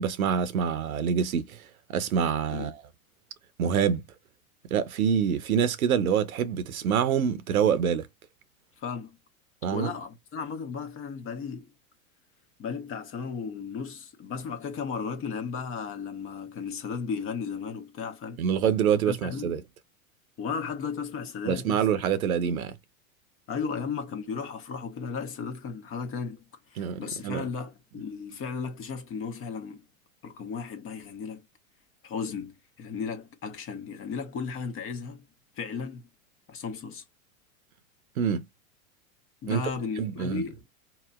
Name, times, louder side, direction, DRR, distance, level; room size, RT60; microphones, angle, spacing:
voice 1, 0.0-1.6 1.9-2.8 3.6-4.0 4.7-8.0 9.6-9.9 18.4-19.6 21.4-22.8 26.8-27.4 38.2-38.4 39.5-39.6 40.0-40.4, right 8 dB, 80° right, 0.8 m, -26 dB
voice 2, 8.8-9.2 9.7-11.7 12.6-18.4 19.1-19.6 20.4-21.9 23.5-26.4 26.7-29.8 30.2-31.4 32.0-35.2 35.6-36.0 36.5-37.0 39.4-40.6, left 5 dB, 30° left, 1.0 m, -35 dB
4.2 x 2.9 x 2.4 m
hypercardioid pair, 105°, 42 cm